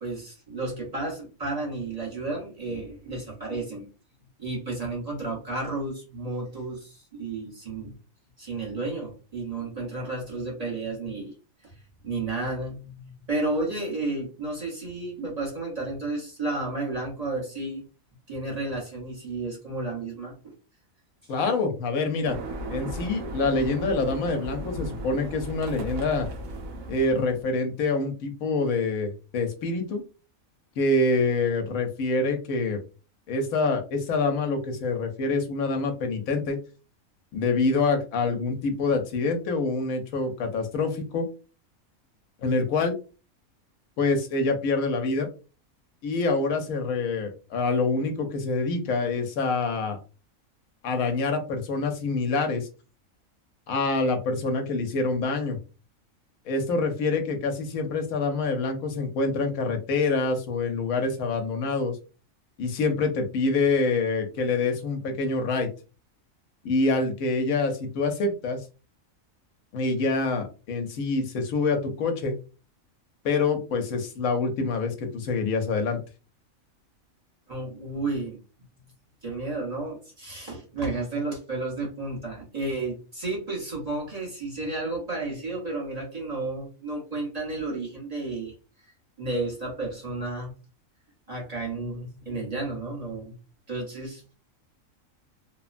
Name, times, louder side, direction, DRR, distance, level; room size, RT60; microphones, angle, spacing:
voice 1, 0.0-3.9 4.4-7.9 8.4-11.3 11.6-11.7 12.0-17.8 18.3-20.5 77.5-78.4 79.2-88.5 89.2-90.5 91.3-93.3 93.7-94.3, right 2 dB, 30° right, -3 dB, 1.0 m, -32 dB
voice 2, 21.3-22.4 22.7-26.3 26.9-30.0 30.8-32.8 33.3-36.6 37.3-41.3 42.4-42.9 44.0-45.3 46.0-50.0 50.8-52.7 53.7-55.6 56.5-62.0 62.6-65.7 66.6-68.6 69.7-72.4 73.2-76.0, left 3 dB, 85° left, 5 dB, 1.1 m, -26 dB
sound 1, 22.3-27.5, right 1 dB, 75° right, 1.0 m, -36 dB
3.0 x 2.2 x 2.4 m, 0.33 s
omnidirectional pair, 1.4 m